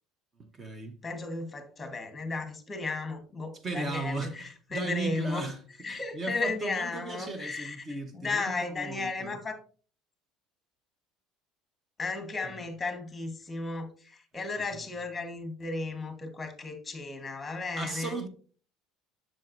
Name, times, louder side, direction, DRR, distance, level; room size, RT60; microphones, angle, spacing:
voice 1, 0.4-1.0 3.6-5.6 5.9-9.4 12.4-12.6 14.6-14.7 17.8-18.3, right 3 dB, 25° right, 0.8 m, -37 dB
voice 2, 1.0-5.4 5.8-9.6 12.0-18.2, left 3 dB, 15° left, 1.3 m, -35 dB
7.4 x 6.3 x 2.6 m
cardioid pair, 140°, 0 cm